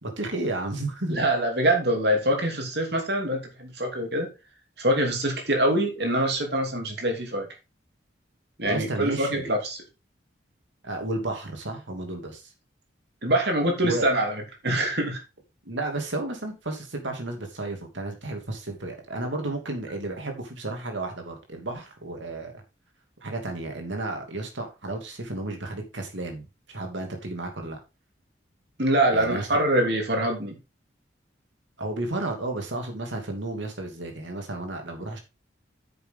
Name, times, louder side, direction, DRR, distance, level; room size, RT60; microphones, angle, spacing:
voice 1, 0.0-1.2 8.6-9.5 10.8-12.5 13.8-14.1 15.6-22.5 23.2-27.8 29.1-29.6 31.8-35.2, right 2 dB, 75° right, 3 dB, 2.7 m, -32 dB
voice 2, 1.1-4.3 4.8-7.5 8.6-9.8 13.2-14.3 14.6-15.2 28.8-30.6, right 1 dB, 60° right, 2 dB, 2.9 m, -24 dB
9.5 x 6.8 x 3.7 m, 0.27 s
head